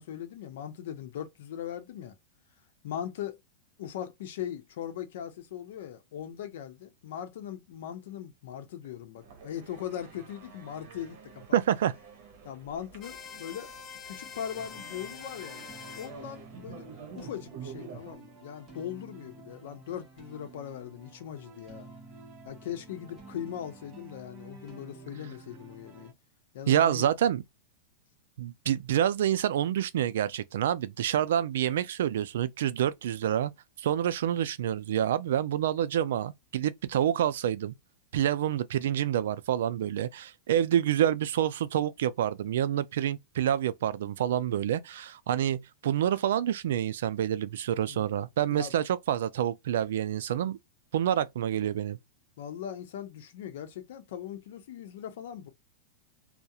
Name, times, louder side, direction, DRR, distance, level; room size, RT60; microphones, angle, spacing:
voice 1, 0.0-2.2 2.8-3.4 3.8-11.6 12.4-13.7 14.1-16.9 17.1-21.9 22.4-26.1 26.5-27.1 47.9-48.1 48.5-48.7 52.4-55.5, left 10 dB, 65° left, 0.7 m, -40 dB
sound 1, 9.2-18.2, right 6 dB, 45° right, 0.8 m, -48 dB
voice 2, 11.5-11.9 26.7-27.4 28.4-33.5 33.8-37.7 38.1-50.6 50.9-52.0, right 10 dB, 75° right, 0.3 m, -27 dB
sound 2, 13.0-16.1, left 7 dB, 20° left, 0.4 m, -45 dB
sound 3, 14.5-26.1, right 3 dB, 20° right, 0.8 m, -51 dB
2.3 x 2.1 x 2.7 m
supercardioid pair, 160°, 0 cm